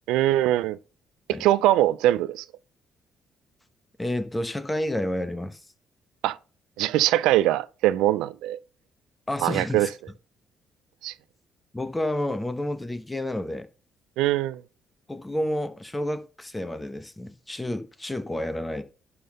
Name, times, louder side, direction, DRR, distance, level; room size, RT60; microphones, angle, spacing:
voice 1, 0.1-0.8 1.4-2.4 6.2-6.4 6.8-8.6 9.4-9.9 11.0-11.1 14.2-14.6, right 14 dB, 85° right, 0.3 m, -22 dB
voice 2, 4.0-5.6 9.3-9.9 11.7-13.7 15.1-18.8, left 1 dB, 15° left, 1.1 m, -30 dB
11.0 x 3.8 x 5.3 m
supercardioid pair, 75°, 0 cm